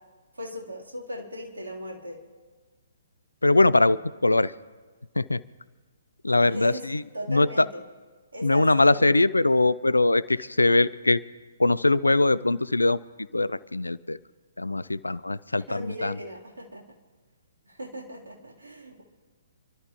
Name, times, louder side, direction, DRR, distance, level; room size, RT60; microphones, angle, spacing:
voice 1, 0.3-2.2 6.4-6.8 7.1-7.8 8.3-9.1 15.5-16.8 17.6-19.0, equal, 70° right, -2 dB, 3.4 m, -38 dB
voice 2, 3.4-4.0 4.2-4.5 5.2-5.4 6.2-7.0 7.3-7.7 8.4-11.2 11.6-13.0 13.3-14.2 14.6-16.2, left 2 dB, 80° left, 18 dB, 0.5 m, -21 dB
28.0 x 13.0 x 3.0 m, 1.4 s
figure-of-eight pair, 125°, 0 cm